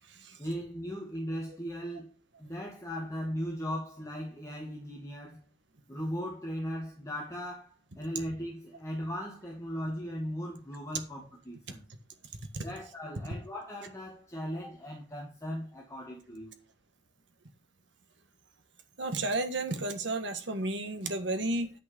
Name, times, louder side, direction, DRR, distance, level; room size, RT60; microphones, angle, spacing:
voice 1, 0.4-2.1 2.4-5.5 5.9-11.8 12.6-16.6, equal, 15° left, 2.2 m, -38 dB
voice 2, 19.0-21.7, right 2 dB, 80° right, 1.6 m, -32 dB
9.8 x 6.4 x 5.1 m
head